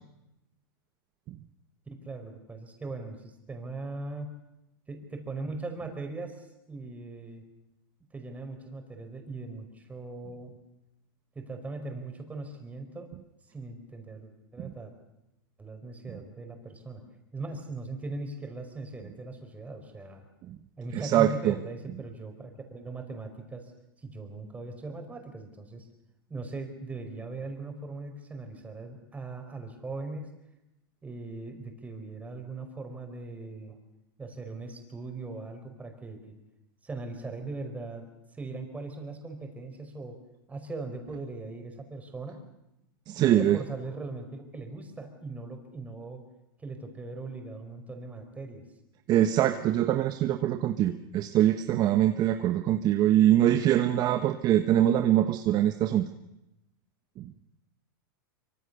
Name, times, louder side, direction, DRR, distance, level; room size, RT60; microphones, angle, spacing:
voice 1, 2.0-4.3 4.9-7.4 8.1-10.5 11.3-13.1 13.5-14.9 15.6-17.0 17.3-20.2 20.8-23.7 24.0-25.9 26.3-30.3 31.0-33.8 34.2-36.4 36.8-38.1 38.3-40.2 40.5-42.4 43.2-46.2 46.6-48.6, right 3 dB, 10° right, 5 dB, 5.0 m, -39 dB
voice 2, 20.9-21.6 43.1-43.6 49.1-56.1, right 12 dB, 35° right, 9 dB, 1.2 m, -23 dB
25.0 x 24.5 x 7.0 m, 0.89 s
hypercardioid pair, 130°, 12 cm